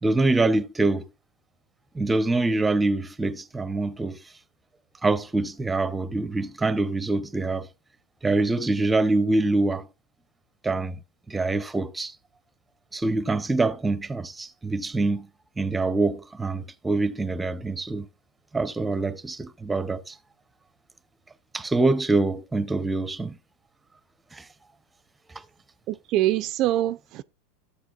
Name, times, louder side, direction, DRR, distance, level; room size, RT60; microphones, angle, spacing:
voice 1, 0.0-1.1 1.9-4.2 5.0-7.7 8.2-9.9 10.6-11.0 11.3-12.1 12.9-15.3 15.6-18.1 18.5-20.1 21.5-23.4 24.3-24.5 25.3-25.4, right 2 dB, 10° right, 0.7 m, -25 dB
voice 2, 25.9-27.2, right 14 dB, 50° right, 0.4 m, -24 dB
13.5 x 8.2 x 2.4 m
hypercardioid pair, 105°, 0 cm